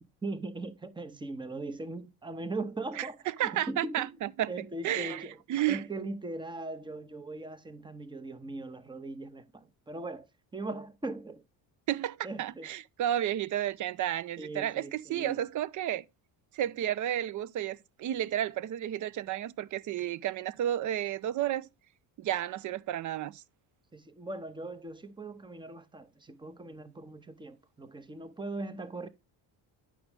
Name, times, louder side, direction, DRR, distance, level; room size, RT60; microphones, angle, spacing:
voice 1, 0.2-4.1 4.5-5.4 5.7-10.3 10.5-11.4 12.2-12.7 14.4-15.4 23.9-29.1, right 2 dB, 10° right, 0.7 m, -40 dB
voice 2, 3.4-4.5 4.8-5.2 5.5-5.8 11.9-16.0 16.5-21.7 22.2-23.4, right 12 dB, 45° right, 0.4 m, -32 dB
9.3 x 6.2 x 3.2 m
cardioid pair, 110°, 47 cm